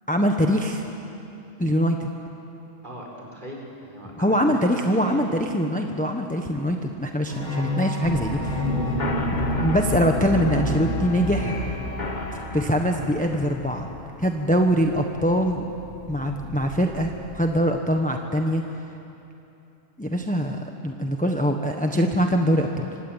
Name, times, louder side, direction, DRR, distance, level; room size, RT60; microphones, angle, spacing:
voice 1, 0.1-0.8 1.6-2.1 4.2-9.0 9.6-11.6 12.5-13.9 14.2-15.6 16.1-18.6 20.0-22.9, equal, 5° left, 3 dB, 1.2 m, -23 dB
voice 2, 2.8-5.2, equal, 40° right, -2 dB, 5.8 m, -39 dB
sound 1, 7.3-12.3, left 1 dB, 80° left, 7.1 m, -29 dB
sound 2, 8.0-17.6, left 1 dB, 40° left, 1.7 m, -33 dB
26.0 x 25.0 x 9.1 m, 2.9 s
omnidirectional pair, 1.3 m